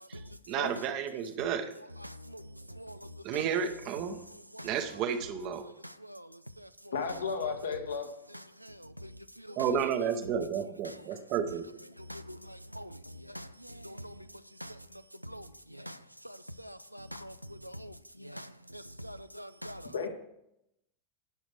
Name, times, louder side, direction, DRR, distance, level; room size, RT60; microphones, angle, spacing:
voice 1, 0.1-1.7 3.2-4.2 4.6-5.7 9.6-11.7, right 7 dB, 40° right, 1.1 m, -32 dB
voice 2, 2.0-3.4 4.5-4.7 5.6-6.9 8.3-9.7 10.9-11.0 12.0-19.9, equal, 90° right, 0.5 m, -45 dB
voice 3, 6.9-8.1 19.9-20.1, left 5 dB, 70° left, 1.7 m, -33 dB
18.5 x 6.3 x 3.4 m
figure-of-eight pair, 90°, 0 cm